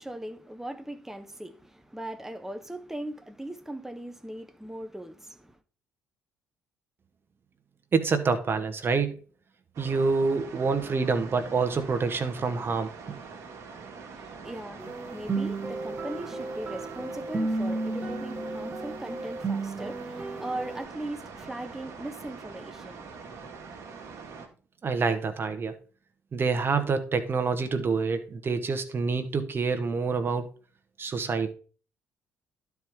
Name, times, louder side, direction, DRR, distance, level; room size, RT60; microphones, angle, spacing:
voice 1, 0.0-5.6 14.1-23.4, right 1 dB, 5° right, 0.9 m, -39 dB
voice 2, 7.9-9.2 9.8-12.9 24.8-25.8 26.3-30.5 31.0-31.5, right 4 dB, 40° right, 1.1 m, -27 dB
sound 1, 9.7-24.5, right 5 dB, 60° right, 1.6 m, -44 dB
sound 2, 14.8-20.8, right 3 dB, 25° right, 1.7 m, -33 dB
12.0 x 4.6 x 3.6 m
hypercardioid pair, 50°, 6 cm